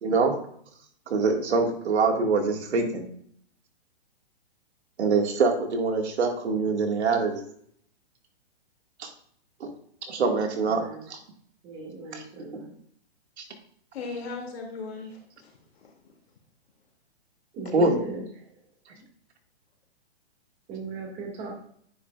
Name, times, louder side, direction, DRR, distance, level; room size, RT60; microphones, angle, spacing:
voice 1, 0.0-0.3 1.1-3.0 5.0-7.3 9.0-9.1 9.6-9.7 10.0-11.2 12.1-12.2 12.5-12.6 13.4-13.5 17.7-18.0, right 4 dB, 75° right, 4 dB, 2.1 m, -24 dB
voice 2, 10.7-11.0 11.6-12.7 17.5-18.2 18.9-19.0 20.7-21.5, right 3 dB, 20° right, 0 dB, 2.0 m, -37 dB
voice 3, 13.9-15.9 17.6-17.8, left 4 dB, 65° left, 1 dB, 2.7 m, -38 dB
9.6 x 6.4 x 2.5 m, 0.63 s
hypercardioid pair, 155°, 33 cm